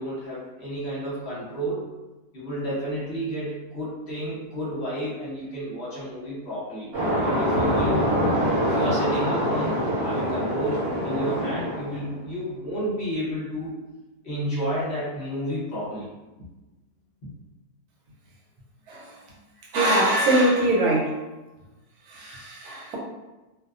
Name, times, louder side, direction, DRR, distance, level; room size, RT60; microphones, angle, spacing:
voice 1, 0.0-1.9 2.3-6.9 7.2-8.1 8.6-13.8 14.2-16.1, equal, 50° left, -8 dB, 1.0 m, -31 dB
sound 1, 6.9-12.1, equal, 45° right, 1.1 m, -24 dB
voice 2, 19.7-21.2 22.1-23.0, right 1 dB, 80° right, -3 dB, 1.1 m, -22 dB
2.5 x 2.2 x 2.4 m, 1.1 s
omnidirectional pair, 1.6 m